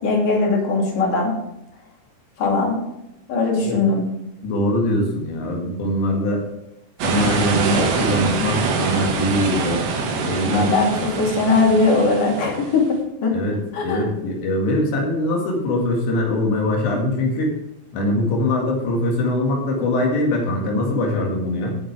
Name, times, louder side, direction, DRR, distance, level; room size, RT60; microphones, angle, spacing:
voice 1, 0.0-1.3 2.4-2.8 3.3-4.0 10.4-12.9 13.2-13.3 13.7-14.1, left 3 dB, 55° left, -1 dB, 4.0 m, -19 dB
voice 2, 4.4-6.4 7.0-10.7 13.3-13.6 13.8-17.5 17.9-21.8, left 1 dB, 90° left, 0 dB, 4.3 m, -22 dB
sound 1, 7.0-12.9, right 4 dB, 90° right, 3.9 m, -24 dB
18.0 x 7.7 x 3.4 m, 0.88 s
omnidirectional pair, 4.8 m